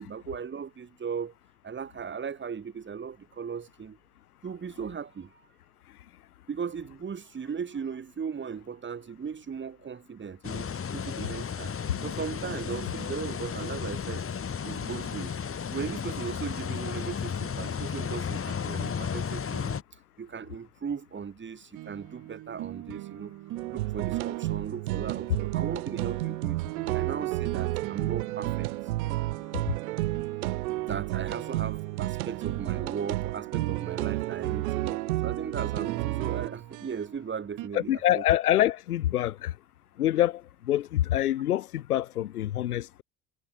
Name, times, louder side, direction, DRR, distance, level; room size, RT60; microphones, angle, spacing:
voice 1, 0.0-1.3 1.6-4.0 4.4-5.3 6.5-10.7 10.9-11.7 12.0-14.3 14.6-15.4 15.7-19.8 20.2-23.4 23.7-26.6 26.9-28.7 30.9-38.2, right 6 dB, 25° right, 2.9 m, -37 dB
sound 1, 10.4-19.8, left 7 dB, 30° left, 5.2 m, -33 dB
sound 2, 21.7-37.7, right 16 dB, 45° right, 1.4 m, -41 dB
sound 3, 23.6-36.5, right 18 dB, 70° right, 0.6 m, -31 dB
voice 2, 37.7-39.5 40.0-43.0, left 13 dB, 75° left, 0.8 m, -26 dB
figure-of-eight pair, 65°, 45 cm